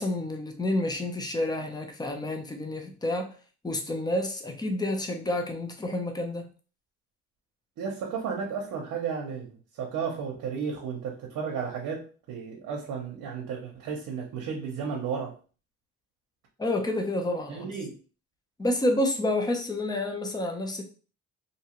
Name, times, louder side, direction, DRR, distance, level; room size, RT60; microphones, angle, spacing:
voice 1, 0.0-3.3 3.6-6.5 16.6-17.7 18.6-20.8, left 1 dB, 15° left, 4 dB, 0.6 m, -29 dB
voice 2, 7.8-15.3 17.5-18.0, right 6 dB, 80° right, 0 dB, 0.7 m, -33 dB
2.7 x 2.3 x 2.9 m, 0.37 s
cardioid pair, 90°, 30 cm